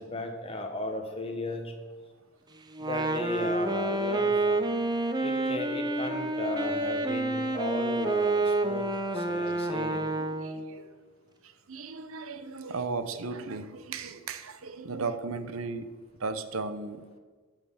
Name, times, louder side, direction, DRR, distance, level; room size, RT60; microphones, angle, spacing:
voice 1, 0.0-1.7 2.8-4.7 5.2-8.9 9.1-10.1, left 1 dB, 25° left, 1.3 m, -35 dB
Wind instrument woodwind instrument, 2.7-10.7, right 2 dB, 20° right, 0.7 m, -28 dB
voice 2, 10.1-10.9 11.4-17.0, right 4 dB, 70° right, 0.8 m, -36 dB
13.0 x 6.1 x 5.7 m
head